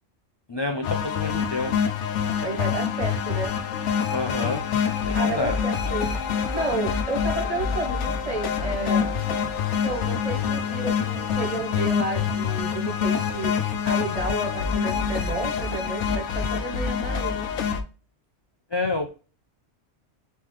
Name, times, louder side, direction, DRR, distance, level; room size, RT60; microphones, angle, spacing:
voice 1, 0.5-1.7 4.1-4.6 5.0-5.6 18.7-19.1, left 3 dB, 40° left, 3 dB, 0.3 m, -28 dB
sound 1, 0.8-17.8, left 7 dB, 85° left, 0.9 m, -26 dB
voice 2, 2.4-3.5 5.1-6.1 6.5-9.1 9.8-13.6 13.8-17.5, right 3 dB, 40° right, 4 dB, 0.6 m, -31 dB
4.1 x 3.7 x 3.0 m, 0.36 s
omnidirectional pair, 1.2 m